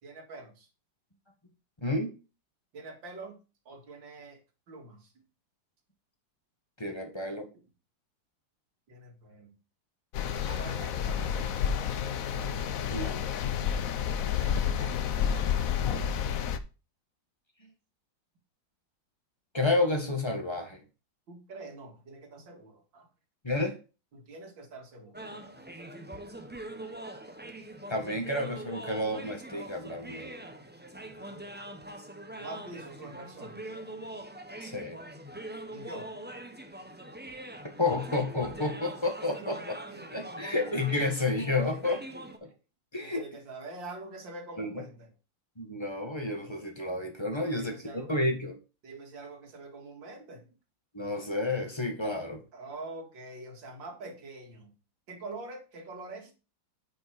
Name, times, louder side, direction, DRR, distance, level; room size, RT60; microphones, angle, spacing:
voice 1, 0.0-0.7 2.7-3.4 3.7-4.4 4.7-5.2 6.8-6.9 8.9-9.5 10.4-11.6 14.2-15.7 21.3-23.1 24.1-25.5 31.2-31.5 32.4-33.6 35.7-36.1 39.4-40.4 41.6-42.5 43.0-45.1 47.3-48.1 48.8-50.5 52.5-54.7 55.1-56.3, right 2 dB, 80° right, 3 dB, 2.7 m, -45 dB
voice 2, 1.8-2.1 6.8-7.5 12.9-13.2 19.5-20.8 23.4-23.8 27.9-30.4 34.6-35.0 37.8-39.6 40.1-42.0 42.4-42.5 42.9-43.2 44.6-44.8 45.6-48.6 50.9-52.4, left 2 dB, 15° left, 3 dB, 1.6 m, -30 dB
sound 1, 10.1-16.6, left 8 dB, 60° left, 1.0 m, -30 dB
sound 2, 25.1-42.4, right 1 dB, 10° right, 0.6 m, -43 dB
9.2 x 5.5 x 4.7 m, 0.32 s
omnidirectional pair, 2.0 m